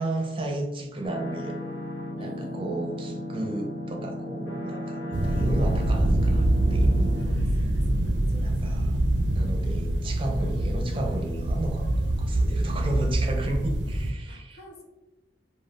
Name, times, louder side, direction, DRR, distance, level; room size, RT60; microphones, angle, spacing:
voice 1, 0.0-1.6 2.2-7.1 7.4-7.7 8.4-9.0 9.3-11.8 12.2-14.6, right 1 dB, 30° right, 2 dB, 0.5 m, -33 dB
sound 1, 1.0-7.2, left 1 dB, 85° left, 1.1 m, -35 dB
voice 2, 2.2-2.8 7.2-8.9 9.6-10.1 12.6-13.3 14.3-14.8, left 2 dB, 70° left, 1 dB, 0.6 m, -49 dB
sound 2, 5.1-14.1, right 1 dB, 90° right, 0.5 m, -25 dB
2.4 x 2.3 x 3.3 m, 1.0 s
head